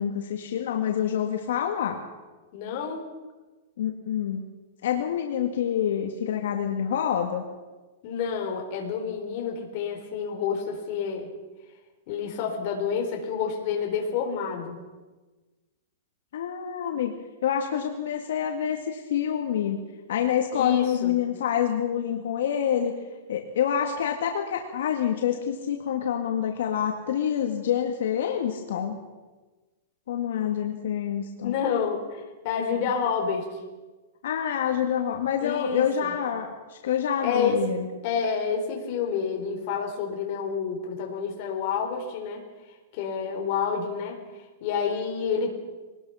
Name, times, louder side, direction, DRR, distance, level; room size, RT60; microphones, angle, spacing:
voice 1, 0.0-2.0 3.8-4.5 4.8-7.4 16.3-17.2 17.4-19.8 20.1-22.9 23.3-29.0 30.1-31.5 34.2-37.9, left 9 dB, 65° left, 2 dB, 2.1 m, -27 dB
voice 2, 2.5-3.0 8.0-11.3 12.1-14.8 20.5-21.1 31.4-33.5 35.4-36.1 37.2-37.6 38.0-42.4 42.9-44.2 44.6-45.5, left 6 dB, 35° left, 2 dB, 4.0 m, -29 dB
23.5 x 19.5 x 5.8 m, 1.2 s
supercardioid pair, 175°, 0 cm